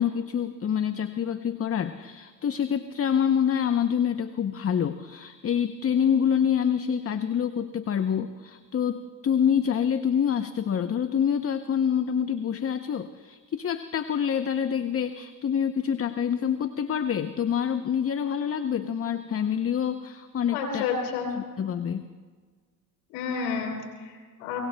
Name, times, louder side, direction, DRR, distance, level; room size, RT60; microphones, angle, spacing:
voice 1, 0.0-20.9 21.4-22.1, left 8 dB, 35° left, 10 dB, 0.7 m, -26 dB
voice 2, 20.5-21.3 23.1-24.6, left 5 dB, 90° left, 2 dB, 3.7 m, -30 dB
24.5 x 24.5 x 2.2 m, 1.6 s
supercardioid pair, 70°, 43 cm